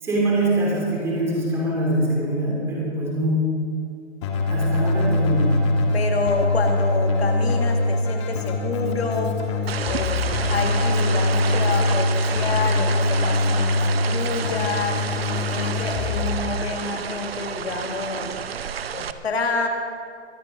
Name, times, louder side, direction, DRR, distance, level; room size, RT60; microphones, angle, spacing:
voice 1, 0.0-3.5 4.5-5.6, right 1 dB, 5° right, -4 dB, 2.4 m, -23 dB
Keyboard (musical), 4.2-16.3, left 2 dB, 25° left, 1.4 m, -23 dB
voice 2, 5.9-9.6 9.9-15.0 15.5-18.4 18.9-19.7, left 4 dB, 60° left, 3 dB, 1.9 m, -28 dB
sound 1, 9.7-19.1, right 7 dB, 55° right, 0.7 m, -30 dB
23.0 x 9.0 x 5.1 m, 2.2 s
hypercardioid pair, 160°, 35 cm